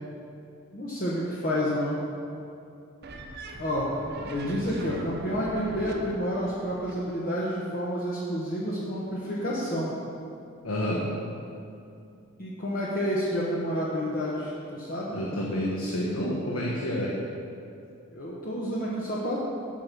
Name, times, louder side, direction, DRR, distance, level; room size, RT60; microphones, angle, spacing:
voice 1, 0.7-2.0 3.6-3.9 4.3-9.9 12.4-15.1 18.1-19.4, equal, 40° left, -6 dB, 1.2 m, -29 dB
sound 1, 3.0-7.0, right 2 dB, 50° right, 0.7 m, -41 dB
voice 2, 10.6-11.0 15.1-17.1, equal, 80° left, -4 dB, 1.3 m, -29 dB
8.7 x 6.1 x 7.4 m, 2.5 s
head